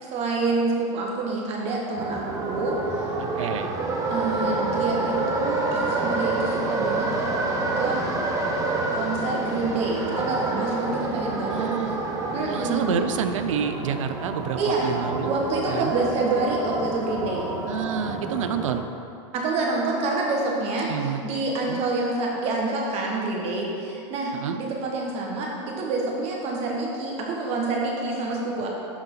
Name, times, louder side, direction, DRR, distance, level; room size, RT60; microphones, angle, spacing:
voice 1, 0.0-2.8 4.1-7.3 7.8-8.0 8.9-11.7 12.3-13.0 14.6-14.9 15.2-17.5 19.3-28.7, right 3 dB, 40° right, -1 dB, 1.6 m, -27 dB
sound 1, 2.0-18.8, right 2 dB, 20° right, 0.9 m, -28 dB
voice 2, 3.2-3.7 11.5-12.0 12.5-15.3 15.7-15.9 17.7-18.8 20.9-21.2 21.6-21.8 24.3-24.6, right 8 dB, 80° right, 9 dB, 0.6 m, -28 dB
12.0 x 4.0 x 4.0 m, 2.5 s
hypercardioid pair, 120°, 16 cm